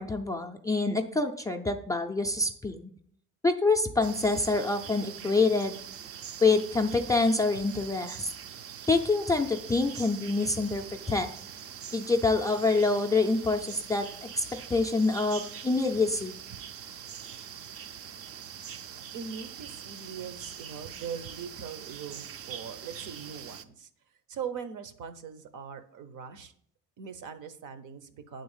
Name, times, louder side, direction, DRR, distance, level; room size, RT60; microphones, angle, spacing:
voice 1, 0.0-2.9 3.4-5.7 6.4-8.3 8.9-11.3 11.9-14.1 14.3-16.3, left 3 dB, 10° left, 3 dB, 0.3 m, -26 dB
sound 1, 4.0-23.6, right 8 dB, 45° right, 0.5 m, -43 dB
voice 2, 19.1-23.9 24.3-26.5 27.0-28.4, right 7 dB, 65° right, 11 dB, 0.9 m, -41 dB
9.3 x 3.9 x 7.1 m, 0.63 s
cardioid pair, 170°, 33 cm